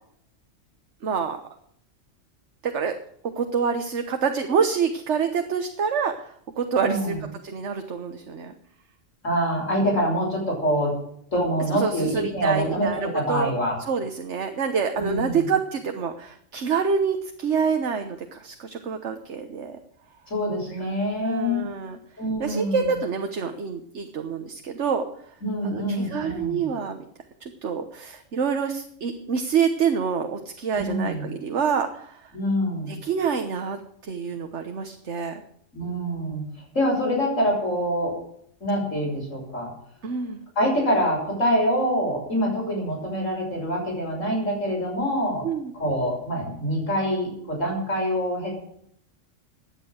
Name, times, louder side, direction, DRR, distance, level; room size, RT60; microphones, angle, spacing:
voice 1, 1.0-1.4 2.6-3.0 3.2-7.1 7.4-8.5 11.7-13.5 13.9-19.8 21.2-22.0 22.4-25.0 25.6-27.0 27.4-32.3 32.9-35.4 40.0-40.4 45.4-45.7, right 6 dB, 65° right, 6 dB, 1.5 m, -27 dB
voice 2, 6.8-7.2 9.2-11.0 11.3-13.8 15.0-15.5 20.3-21.7 22.2-23.0 25.4-26.6 30.7-31.2 32.3-32.9 35.7-36.5 36.7-38.2 38.6-39.7 40.6-45.5 45.7-48.5, equal, 85° left, 0 dB, 6.6 m, -25 dB
16.5 x 10.0 x 6.4 m, 0.68 s
omnidirectional pair, 1.3 m